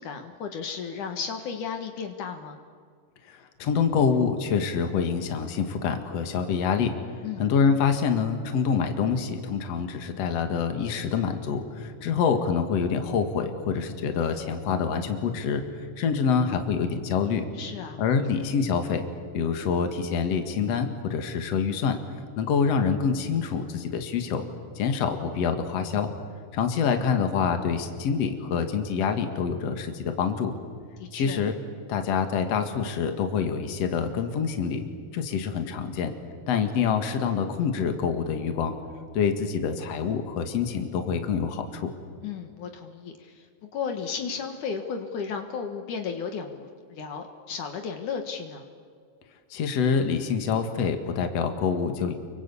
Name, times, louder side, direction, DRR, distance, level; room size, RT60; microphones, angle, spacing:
voice 1, 0.0-2.6 7.2-7.5 17.5-18.0 31.0-31.5 42.2-48.7, left 6 dB, 70° left, 5 dB, 3.0 m, -34 dB
voice 2, 3.3-6.9 7.4-15.6 16.0-17.5 18.0-19.0 19.3-22.0 22.4-24.4 24.8-26.1 26.5-30.5 31.1-31.6 31.9-34.8 35.1-36.1 36.5-38.7 39.1-41.9 49.5-52.1, left 6 dB, 55° left, 6 dB, 2.8 m, -26 dB
29.5 x 24.0 x 8.5 m, 2.1 s
omnidirectional pair, 3.7 m